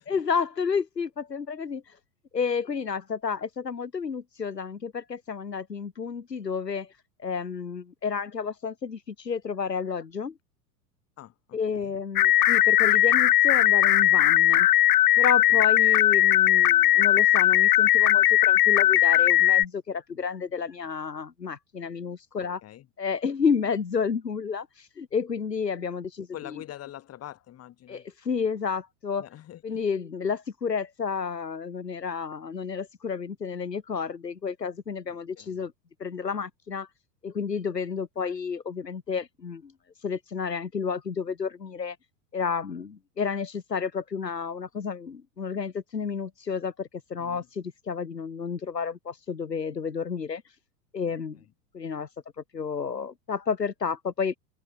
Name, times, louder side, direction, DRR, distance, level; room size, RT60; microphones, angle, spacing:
voice 1, 0.1-2.0 2.3-6.9 7.2-10.3 11.5-14.7 15.2-22.6 23.0-26.3 27.9-29.3 29.6-35.7 36.0-36.9 37.2-39.7 40.0-42.0 42.3-50.4 50.9-51.4 51.7-52.1 52.5-54.3, left 6 dB, 85° left, 1.0 m, -31 dB
voice 2, 11.2-11.9 15.5-15.6 22.6-22.9 26.3-28.0 29.2-29.8 35.1-35.6 47.2-47.5 51.3-51.5, left 12 dB, 30° left, 4.7 m, -45 dB
sound 1, 12.2-19.6, left 13 dB, 70° left, 0.6 m, -19 dB
figure-of-eight pair, 85°, 48 cm